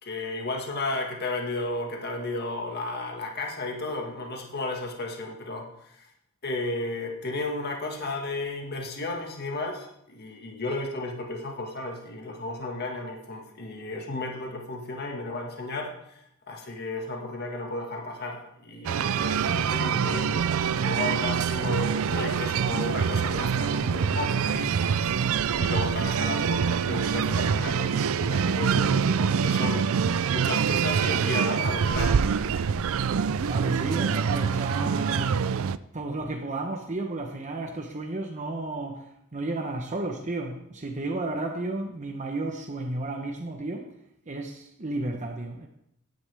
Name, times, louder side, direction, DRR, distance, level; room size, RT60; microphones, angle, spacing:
voice 1, 0.0-6.1 6.4-16.2 16.5-24.7 25.0-32.2, left 2 dB, 50° left, 1 dB, 1.8 m, -34 dB
sound 1, 18.8-35.8, right 6 dB, 65° right, 0.4 m, -25 dB
voice 2, 33.4-35.4 35.9-43.9 44.3-45.7, right 2 dB, 35° right, 3 dB, 1.0 m, -33 dB
15.5 x 10.5 x 3.5 m, 0.77 s
head